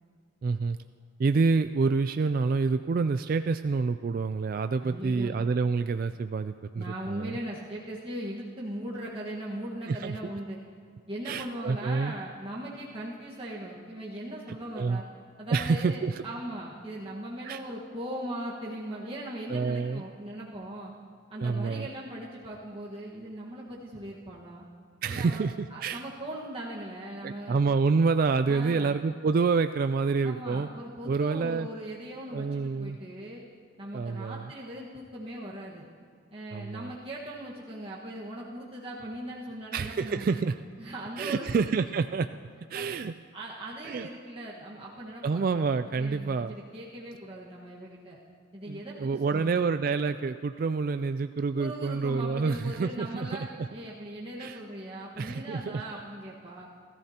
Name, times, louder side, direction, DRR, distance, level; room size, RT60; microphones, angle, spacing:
voice 1, 0.4-0.8 1.2-7.3 9.9-10.2 11.3-12.1 14.7-15.0 15.5-16.2 17.4-17.6 19.5-20.0 21.4-21.9 25.0-26.0 27.2-30.7 31.0-31.7 32.3-33.0 33.9-34.5 36.5-36.9 39.7-40.5 41.2-42.3 42.7-43.1 43.8-44.1 45.2-46.6 48.7-53.7 54.4-54.6 55.2-55.8, right 4 dB, 45° right, 10 dB, 0.3 m, -28 dB
voice 2, 4.8-5.3 6.7-10.6 11.1-15.0 15.4-20.9 21.3-24.7 25.1-25.4 25.7-27.6 28.5-29.0 30.2-33.4 33.8-35.9 36.3-40.5 40.8-41.6 42.7-42.9 43.3-45.6 46.0-48.2 48.5-49.6 51.6-56.7, right 1 dB, 30° right, -6 dB, 1.5 m, -39 dB
30.0 x 14.0 x 2.9 m, 2.3 s
head